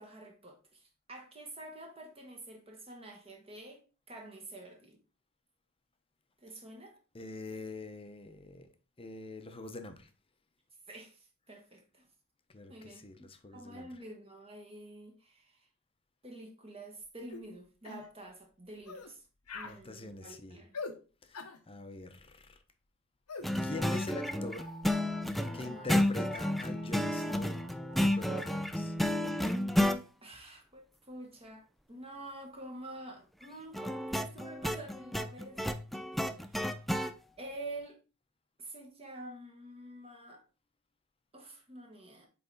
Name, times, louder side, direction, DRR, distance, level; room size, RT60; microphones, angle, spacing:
voice 1, 0.0-3.8 4.1-5.0 6.4-7.0 10.9-12.1 12.7-15.7 16.2-19.2 19.5-20.8 23.5-23.6 25.5-26.0 30.2-36.6 37.4-38.0 38.6-40.4 41.3-42.3, right 1 dB, 25° right, 1.2 m, -48 dB
voice 2, 7.1-8.7 9.0-10.1 12.5-14.0 19.6-20.6 21.2-22.6 23.6-24.7 25.5-27.5 28.0-28.9, left 2 dB, 25° left, 0.7 m, -44 dB
sound 1, 17.3-17.5 17.8-18.1 18.8-19.1 19.5-19.8 20.7-21.0 21.3-21.6 23.3-23.5, left 4 dB, 90° left, 0.9 m, -42 dB
sound 2, 23.4-30.0 33.7-37.1, left 1 dB, ahead, 0.3 m, -31 dB
sound 3, 23.7-28.6, left 1 dB, 65° right, 1.7 m, -52 dB
8.1 x 3.4 x 3.9 m
head